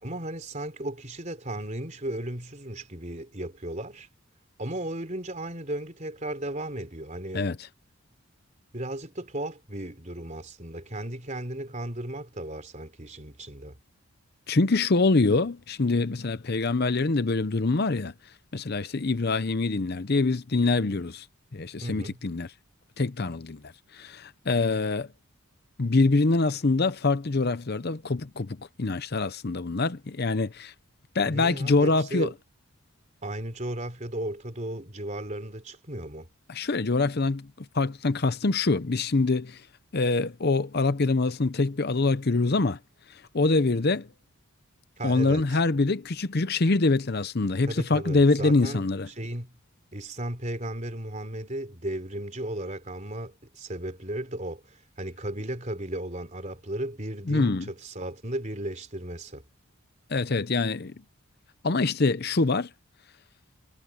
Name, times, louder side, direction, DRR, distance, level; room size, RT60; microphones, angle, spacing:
voice 1, 0.0-4.1 4.6-7.5 8.7-13.8 21.8-22.2 31.3-32.3 33.2-36.3 45.0-45.6 47.7-49.5 49.9-59.4, right 1 dB, 35° right, 3.9 m, -35 dB
voice 2, 14.5-18.1 18.5-21.2 21.5-22.5 23.0-23.6 23.9-25.1 25.8-30.7 31.1-32.3 36.5-37.5 37.7-39.6 39.9-42.8 43.3-44.1 45.0-49.1 57.3-57.6 60.1-60.9 61.6-62.7, left 3 dB, 45° left, 0.7 m, -24 dB
head